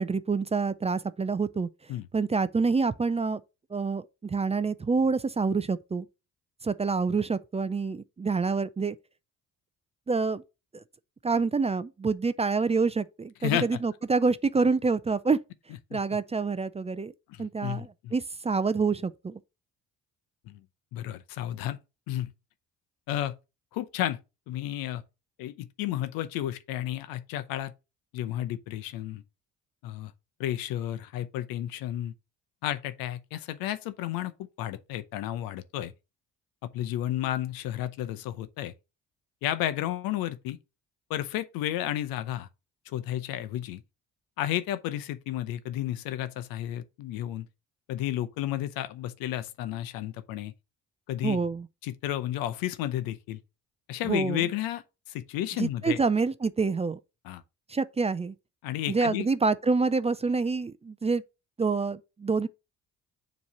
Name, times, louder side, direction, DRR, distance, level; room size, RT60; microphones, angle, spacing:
voice 1, 0.0-1.7 2.1-3.4 3.7-6.1 6.6-9.0 10.1-10.4 10.7-10.8 11.2-15.4 15.9-17.1 17.4-19.4 51.2-51.7 54.0-54.5 55.6-57.0 57.7-58.3 58.9-61.2 61.6-62.5, right 4 dB, 20° right, 0.4 m, -27 dB
voice 2, 13.4-13.8 15.9-16.0 17.3-18.1 20.5-20.6 20.9-21.8 22.1-22.3 23.1-23.3 23.7-24.2 24.5-25.0 25.4-27.7 28.1-29.2 29.8-30.1 30.4-32.1 32.6-35.9 36.7-38.7 39.4-40.6 41.1-42.5 42.9-43.8 44.4-47.5 47.9-50.5 51.1-51.4 51.8-53.4 53.9-54.8 55.1-56.0 57.2-57.4 58.6-59.3, left 12 dB, 80° left, 0.7 m, -32 dB
7.0 x 3.1 x 5.6 m
supercardioid pair, 65°, 35 cm